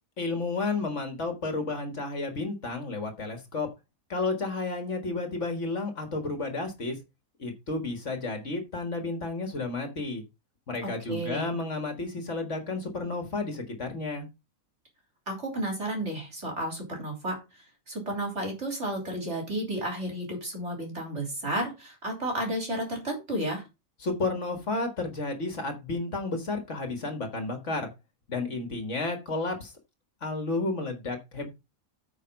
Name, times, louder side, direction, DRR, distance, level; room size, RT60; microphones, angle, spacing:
voice 1, 0.2-3.7 4.1-7.0 7.4-10.2 10.7-14.3 24.0-27.9 28.3-29.7 30.2-31.5, left 3 dB, 55° left, 6 dB, 1.9 m, -32 dB
voice 2, 10.8-11.5 15.3-17.4 17.9-23.6, right 1 dB, 50° right, 2 dB, 3.7 m, -32 dB
9.3 x 5.0 x 5.2 m, 0.26 s
omnidirectional pair, 1.5 m